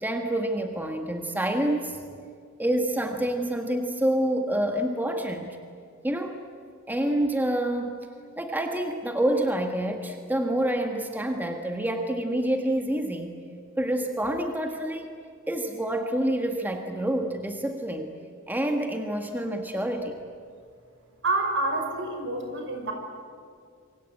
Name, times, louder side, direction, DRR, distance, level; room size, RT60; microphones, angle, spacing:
voice 1, 0.0-2.1 2.6-5.6 6.0-6.4 6.9-8.0 8.4-13.4 13.8-15.1 15.5-18.1 18.5-20.2, right 1 dB, 10° right, 4 dB, 1.6 m, -27 dB
voice 2, 21.2-22.9, right 2 dB, 65° right, 4 dB, 5.7 m, -28 dB
27.0 x 24.5 x 8.9 m, 2.3 s
head